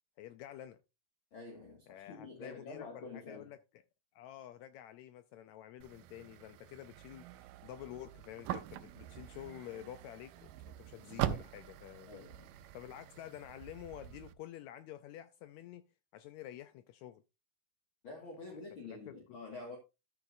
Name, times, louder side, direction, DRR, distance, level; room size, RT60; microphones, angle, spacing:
voice 1, 0.2-0.8 1.9-3.6 4.1-12.3 12.7-15.8 16.1-17.2 18.9-19.4, left 12 dB, 90° left, 1.6 m, -49 dB
voice 2, 1.3-3.5 12.1-12.5 18.0-19.8, left 3 dB, 45° left, 2.2 m, -47 dB
sound 1, 5.8-14.3, right 12 dB, 90° right, 2.4 m, -43 dB
13.0 x 6.9 x 2.6 m
omnidirectional pair, 3.9 m